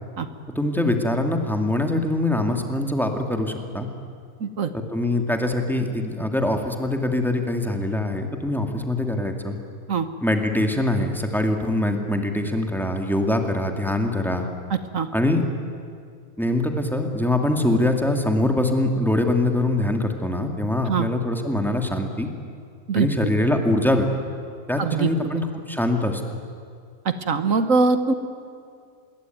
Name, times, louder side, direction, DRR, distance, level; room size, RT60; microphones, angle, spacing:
voice 1, 0.5-3.9 4.9-9.6 10.2-14.5 15.1-15.4 16.4-22.3 22.9-24.1 24.7-26.2, left 1 dB, ahead, 3 dB, 2.3 m, -23 dB
voice 2, 4.4-4.7 9.9-10.1 14.7-15.1 20.9-21.1 22.9-23.1 24.8-25.3 27.0-28.1, right 4 dB, 60° right, 10 dB, 1.6 m, -22 dB
26.0 x 22.0 x 9.3 m, 2.3 s
omnidirectional pair, 1.6 m